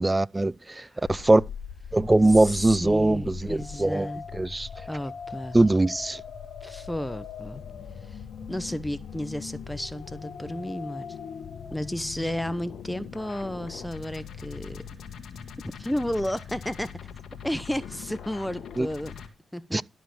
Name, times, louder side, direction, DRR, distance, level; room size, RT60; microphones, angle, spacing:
voice 1, 0.0-1.4 1.9-4.1 4.3-4.7 5.5-6.2 18.8-18.9 19.7-19.8, right 2 dB, 20° right, 0.5 m, -22 dB
sound 1, 1.0-19.3, left 7 dB, 70° left, 1.6 m, -40 dB
voice 2, 2.3-4.2 4.9-5.6 6.6-7.6 8.0-8.2 8.5-11.1 11.7-14.8 15.6-17.1 17.4-19.1 19.5-19.8, equal, 5° left, 0.9 m, -33 dB
12.5 x 5.2 x 6.2 m
supercardioid pair, 45°, 0 cm